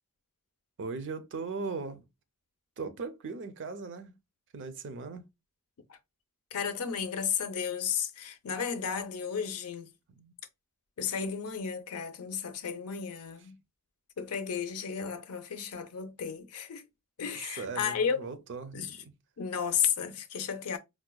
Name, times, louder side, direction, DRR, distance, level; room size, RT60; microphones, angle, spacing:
voice 1, 0.8-2.1 2.8-4.2 4.5-5.2 10.2-10.3 17.6-19.1, right 4 dB, 55° right, 0.5 m, -38 dB
voice 2, 6.5-9.9 11.0-13.6 14.2-16.8 17.2-18.2 18.7-19.0 19.4-20.8, left 7 dB, 75° left, 0.5 m, -33 dB
4.7 x 2.1 x 2.2 m
head